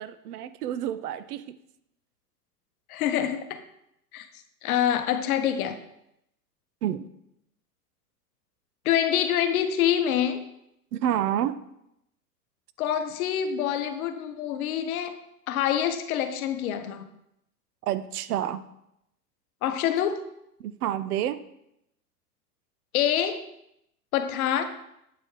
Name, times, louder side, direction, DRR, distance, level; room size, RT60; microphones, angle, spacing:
voice 1, 0.0-1.6 6.8-7.1 10.9-11.6 17.8-18.6 20.6-21.4, right 11 dB, 70° right, 14 dB, 0.5 m, -29 dB
voice 2, 2.9-3.6 4.1-4.3 4.6-5.8 8.8-10.4 12.8-15.2 15.5-17.1 19.6-20.2 22.9-23.4 24.1-24.6, left 10 dB, 60° left, 9 dB, 0.8 m, -26 dB
8.1 x 4.2 x 3.2 m, 0.80 s
hypercardioid pair, 105°, 48 cm